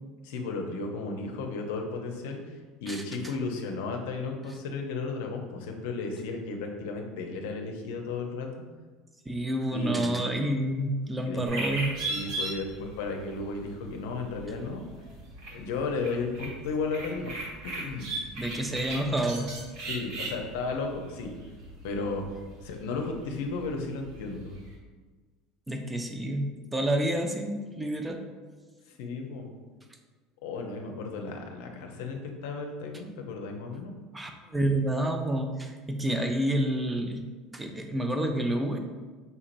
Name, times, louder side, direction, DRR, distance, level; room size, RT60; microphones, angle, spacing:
voice 1, 0.2-8.6 9.7-10.3 11.3-11.4 12.1-14.9 15.5-17.4 17.6-18.1 19.8-21.4 21.8-22.2 22.6-24.5 28.9-29.5 30.4-33.9, left 3 dB, 80° left, 2 dB, 0.6 m, -34 dB
voice 2, 9.3-12.0 18.4-19.5 25.7-28.2 34.1-37.3 37.5-38.8, right 1 dB, 15° right, 4 dB, 0.6 m, -29 dB
sound 1, 11.4-24.7, right 2 dB, 70° right, 1.0 m, -39 dB
5.4 x 2.9 x 2.5 m, 1.4 s
hypercardioid pair, 90°, 0 cm